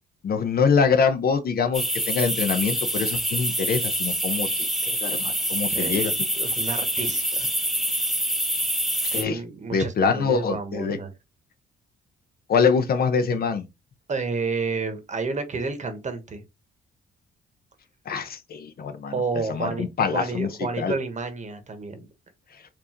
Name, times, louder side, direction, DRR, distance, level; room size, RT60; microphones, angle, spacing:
voice 1, 0.2-4.5 5.0-6.1 9.1-9.4 9.7-11.0 12.5-13.6 18.1-19.1 19.5-20.5 20.8-20.9, left 5 dB, 50° left, 0.7 m, -24 dB
sound 1, 1.7-9.2, equal, ahead, 0.8 m, -26 dB
voice 2, 5.7-6.1 6.4-7.5 9.1-11.1 14.1-16.4 19.1-19.9 20.1-22.1, right 4 dB, 35° right, 1.0 m, -30 dB
4.5 x 2.6 x 2.9 m
cardioid pair, 90°, 20 cm